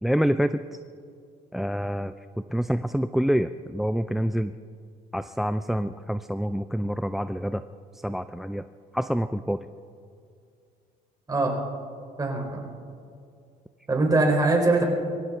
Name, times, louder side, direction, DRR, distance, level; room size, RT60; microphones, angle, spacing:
voice 1, 0.0-0.6 1.5-2.1 2.5-4.5 5.1-7.6 7.9-8.6 8.9-9.7, equal, ahead, 12 dB, 0.3 m, -26 dB
voice 2, 12.2-12.6 13.9-14.8, right 2 dB, 20° right, 0 dB, 3.7 m, -22 dB
23.0 x 16.5 x 3.7 m, 2.4 s
cardioid pair, 115°, 17 cm